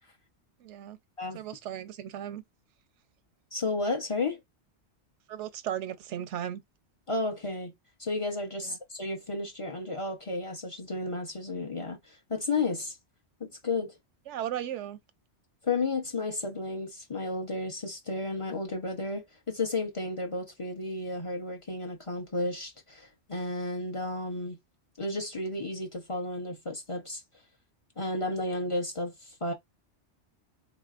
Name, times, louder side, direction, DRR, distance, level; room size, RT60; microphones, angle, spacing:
voice 1, 0.6-1.0 1.3-2.4 5.3-6.6 8.6-8.8 14.3-15.0, right 10 dB, 85° right, 0.9 m, -36 dB
voice 2, 3.5-4.4 7.1-7.7 8.0-13.0 13.4-13.9 15.6-24.6 25.0-27.2 28.0-29.5, left 2 dB, 30° left, 0.7 m, -33 dB
3.9 x 2.9 x 2.4 m
omnidirectional pair, 1.2 m